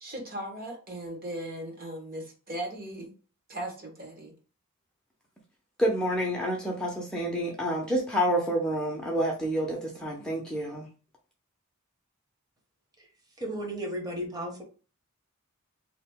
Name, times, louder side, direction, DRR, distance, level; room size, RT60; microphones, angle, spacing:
voice 1, 0.0-3.1 3.5-4.3, right 1 dB, 45° right, 1.2 m, -38 dB
voice 2, 5.8-10.9, equal, 5° left, 0.6 m, -28 dB
voice 3, 13.4-14.6, right 1 dB, 20° right, 1.0 m, -34 dB
3.6 x 2.9 x 3.5 m
head